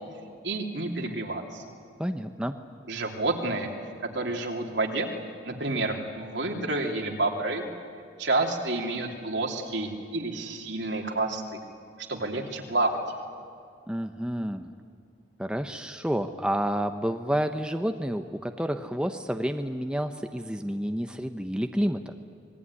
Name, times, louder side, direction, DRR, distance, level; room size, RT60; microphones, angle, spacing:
voice 1, 0.4-1.6 2.9-3.7 4.1-5.1 5.4-7.7 8.2-11.6 12.1-13.0, right 2 dB, 70° right, 2 dB, 3.1 m, -29 dB
voice 2, 2.0-2.6 13.9-14.7 15.4-22.0, equal, 5° right, 6 dB, 0.8 m, -29 dB
26.5 x 21.0 x 9.8 m, 2.4 s
head